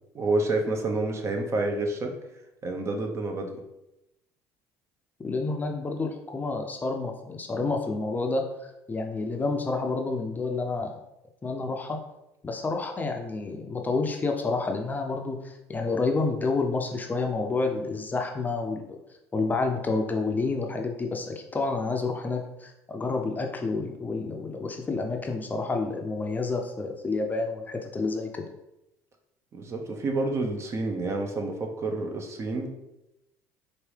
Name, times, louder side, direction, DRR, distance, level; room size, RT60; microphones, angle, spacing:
voice 1, 0.1-2.1 2.6-3.5 29.5-32.7, right 2 dB, 40° right, 3 dB, 0.7 m, -28 dB
voice 2, 5.2-10.9 11.4-12.0 12.4-19.0 19.3-28.5, left 3 dB, 25° left, 3 dB, 0.5 m, -29 dB
4.6 x 2.6 x 3.3 m, 0.90 s
supercardioid pair, 85°, 7 cm